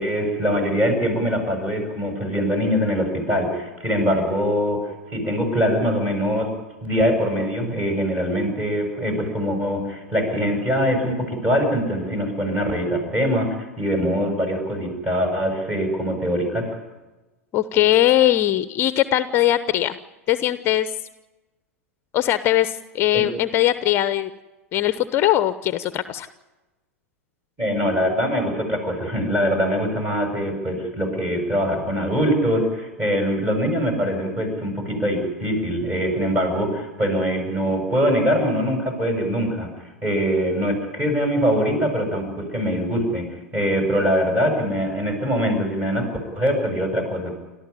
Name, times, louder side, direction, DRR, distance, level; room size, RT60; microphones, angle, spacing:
voice 1, 0.0-6.5 6.8-13.5 13.8-16.7 23.1-23.2 27.6-46.1 46.3-47.3, equal, 20° right, 4 dB, 7.8 m, -23 dB
voice 2, 17.5-20.0 20.3-20.9 22.1-24.3 24.7-26.3, left 13 dB, 30° left, 13 dB, 0.8 m, -20 dB
29.5 x 13.5 x 9.9 m, 1.1 s
figure-of-eight pair, 95°, 8 cm